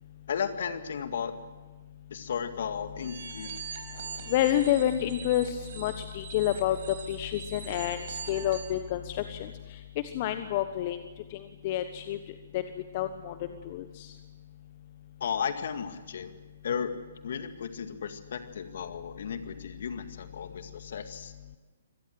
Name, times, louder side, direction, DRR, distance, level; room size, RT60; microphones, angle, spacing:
voice 1, 0.3-1.3 2.1-3.6 15.2-16.3 16.6-16.9 17.2-21.3, left 7 dB, 60° left, 9 dB, 2.1 m, -34 dB
sound 1, 3.0-8.8, right 6 dB, 55° right, 5.1 m, -42 dB
voice 2, 4.3-6.8 7.1-9.4 10.1-11.0 11.6-12.2 12.5-12.6 12.9-13.3 13.7-13.8, left 12 dB, 40° left, 9 dB, 1.2 m, -28 dB
25.5 x 18.0 x 7.8 m, 1.3 s
figure-of-eight pair, 130°, 0 cm